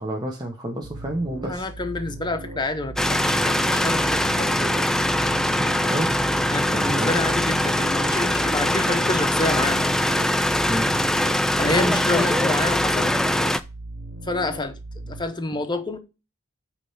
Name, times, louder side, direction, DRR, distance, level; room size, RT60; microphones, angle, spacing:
voice 1, 0.0-1.7 5.9-6.2 6.7-7.2 8.5-8.6 10.7-11.0, right 1 dB, 20° right, 1.0 m, -29 dB
sound 1, 0.8-15.2, right 1 dB, 70° right, 1.1 m, -38 dB
voice 2, 1.4-4.7 6.5-9.9 11.6-13.1 14.2-14.8 15.1-16.0, left 2 dB, 20° left, 0.9 m, -28 dB
sound 2, 3.0-13.6, left 1 dB, ahead, 0.3 m, -22 dB
8.8 x 3.3 x 5.7 m
head